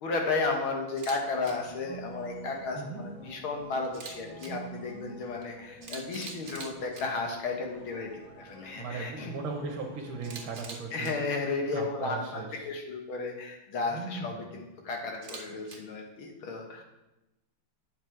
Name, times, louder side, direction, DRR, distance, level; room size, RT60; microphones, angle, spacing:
voice 1, 0.0-9.4 10.9-16.8, left 3 dB, 80° left, 2 dB, 2.2 m, -33 dB
Camera, 0.9-1.2 1.4-1.5 3.8-4.5 5.4-5.5 5.8-7.0 10.2-11.1 15.1-15.8, right 4 dB, 45° right, 1.1 m, -43 dB
sound 1, 1.4-10.5, right 2 dB, 15° left, 1.4 m, -48 dB
voice 2, 8.8-11.2 11.7-12.7 13.9-14.5, right 4 dB, 90° right, 0 dB, 1.8 m, -38 dB
8.0 x 7.6 x 4.6 m, 0.97 s
omnidirectional pair, 2.2 m